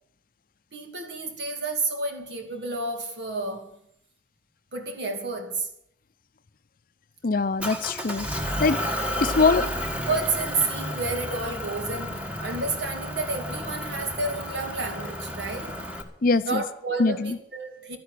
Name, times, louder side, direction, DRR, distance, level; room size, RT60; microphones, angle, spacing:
voice 1, 0.7-3.8 4.7-5.7 9.5-9.7 10.1-15.9 16.4-18.0, right 3 dB, 65° right, 2.5 m, -30 dB
voice 2, 7.2-8.8 9.2-9.6 16.2-16.6 17.0-17.4, left 4 dB, 50° left, 0.6 m, -23 dB
Motor vehicle (road) / Engine, 7.6-16.0, equal, 5° right, 1.6 m, -32 dB
12.0 x 10.5 x 8.4 m
head